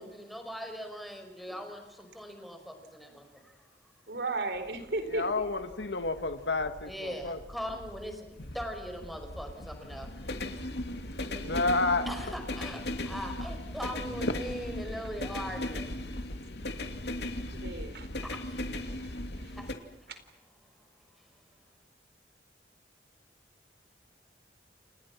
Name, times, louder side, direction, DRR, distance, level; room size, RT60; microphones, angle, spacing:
voice 1, 0.0-3.6 6.8-8.3 8.5-10.1 12.1-15.9 18.2-19.0 19.5-19.8 20.6-20.7, equal, ahead, 5 dB, 5.4 m, -41 dB
voice 2, 4.1-5.5 11.2-11.9 17.5-18.1, right 2 dB, 65° right, 9 dB, 4.4 m, -35 dB
sound 1, 4.5-19.7, left 1 dB, 70° left, 2.8 m, -38 dB
voice 3, 5.1-7.4 11.4-12.3, left 3 dB, 85° left, 9 dB, 1.9 m, -30 dB
30.0 x 28.5 x 6.1 m, 0.87 s
head